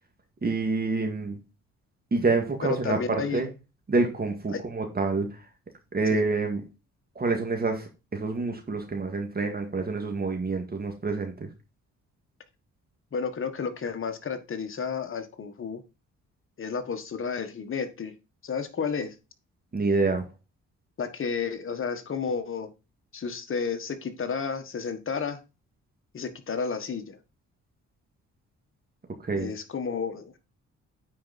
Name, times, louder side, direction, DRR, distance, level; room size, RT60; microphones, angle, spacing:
voice 1, 0.4-1.4 2.1-3.5 3.9-5.3 5.9-6.6 7.2-11.5 19.7-20.2 29.2-29.5, right 3 dB, 30° right, 3 dB, 2.0 m, -27 dB
voice 2, 2.6-3.5 4.5-4.6 6.1-6.2 13.1-15.8 16.6-18.1 18.4-19.1 21.0-22.7 23.1-25.4 26.1-27.2 29.4-30.4, left 5 dB, 45° left, 7 dB, 1.5 m, -32 dB
9.5 x 4.7 x 4.2 m, 0.28 s
cardioid pair, 90°, 30 cm